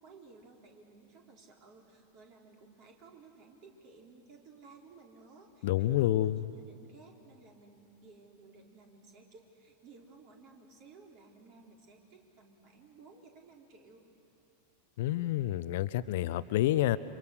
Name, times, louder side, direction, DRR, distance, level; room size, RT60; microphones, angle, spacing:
voice 1, 0.0-14.0, right 4 dB, 40° right, 0 dB, 4.1 m, -56 dB
voice 2, 5.6-6.5 15.0-17.0, left 14 dB, 50° left, 15 dB, 0.6 m, -28 dB
29.5 x 25.5 x 6.7 m, 2.8 s
figure-of-eight pair, 90°, 0 cm